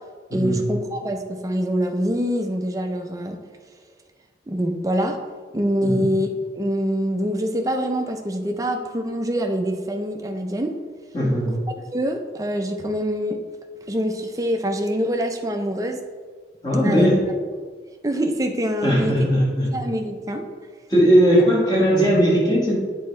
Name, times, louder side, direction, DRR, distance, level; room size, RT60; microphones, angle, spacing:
voice 1, 0.3-3.4 4.5-5.2 5.5-6.3 6.5-10.7 11.9-13.4 13.9-16.0 16.8-17.1 18.0-19.1 19.7-20.4, equal, 20° right, 4 dB, 0.5 m, -25 dB
voice 2, 11.1-11.5 16.6-17.2 18.8-19.7 20.9-22.8, equal, 20° left, -5 dB, 1.5 m, -18 dB
7.8 x 4.5 x 3.2 m, 1.5 s
head